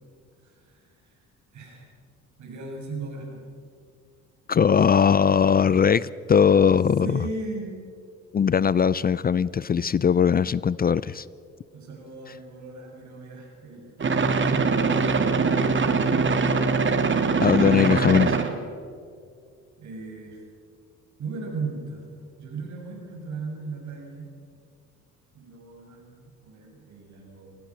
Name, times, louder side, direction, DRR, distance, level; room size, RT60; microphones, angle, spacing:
voice 1, 0.4-1.2 1.5-1.9 2.4-3.4 7.0-7.8 11.7-14.7 19.8-20.4 21.2-22.0 22.4-24.3 25.3-27.6, right 4 dB, 70° right, 0 dB, 7.2 m, -37 dB
voice 2, 4.5-7.2 8.3-11.3 17.4-18.4, left 7 dB, 30° left, 19 dB, 0.4 m, -20 dB
sound 1, 14.0-18.5, right 4 dB, 40° right, 2.1 m, -22 dB
27.0 x 18.5 x 6.2 m, 2.3 s
cardioid pair, 90°, 30 cm